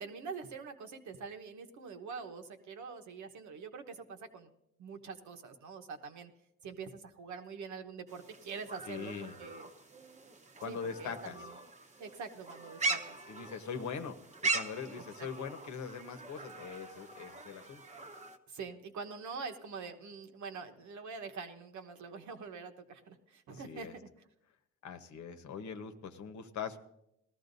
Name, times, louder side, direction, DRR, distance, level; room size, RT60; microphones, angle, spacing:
voice 1, 0.0-4.5 4.8-6.3 6.6-9.7 10.6-11.6 12.0-13.2 15.2-15.3 18.5-24.1, right 5 dB, 70° right, 6 dB, 1.2 m, -45 dB
sound 1, 8.1-18.4, right 3 dB, 25° right, 0.9 m, -40 dB
voice 2, 8.9-9.3 10.6-11.4 13.3-14.2 14.5-17.8 23.5-23.9 24.8-26.8, left 6 dB, 75° left, 8 dB, 1.1 m, -42 dB
19.0 x 14.0 x 2.7 m, 0.83 s
cardioid pair, 90°, 30 cm